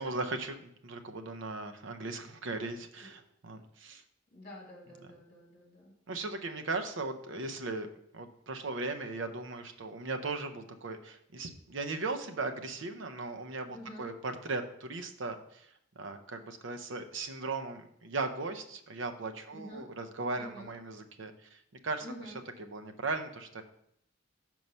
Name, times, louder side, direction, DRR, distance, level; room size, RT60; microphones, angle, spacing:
voice 1, 0.0-4.0 6.1-7.9 8.1-15.7 16.0-23.6, right 3 dB, 65° right, 6 dB, 0.6 m, -38 dB
voice 2, 4.3-5.9 13.7-14.1 19.5-19.8 20.4-20.7 22.0-22.4, equal, 35° left, -1 dB, 1.7 m, -47 dB
5.3 x 4.6 x 5.4 m, 0.74 s
head